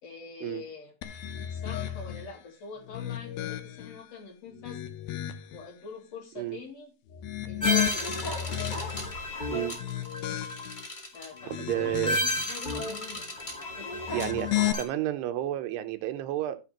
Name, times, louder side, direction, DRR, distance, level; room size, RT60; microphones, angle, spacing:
voice 1, 0.0-0.9 1.5-4.8 5.5-6.9 7.4-8.3 11.0-13.3 13.8-14.0, left 5 dB, 45° left, 3.5 m, -44 dB
sound 1, 1.0-2.3 2.9-4.0 4.5-5.6 7.1-9.2 9.7-10.9 11.3-12.5 13.9-14.7, left 13 dB, 75° left, 2.5 m, -33 dB
sound 2, 7.6-14.8, left 1 dB, 20° left, 1.3 m, -33 dB
voice 2, 9.5-9.8 11.5-12.2 14.1-16.6, right 13 dB, 85° right, 3.0 m, -31 dB
16.0 x 5.9 x 3.0 m
omnidirectional pair, 4.7 m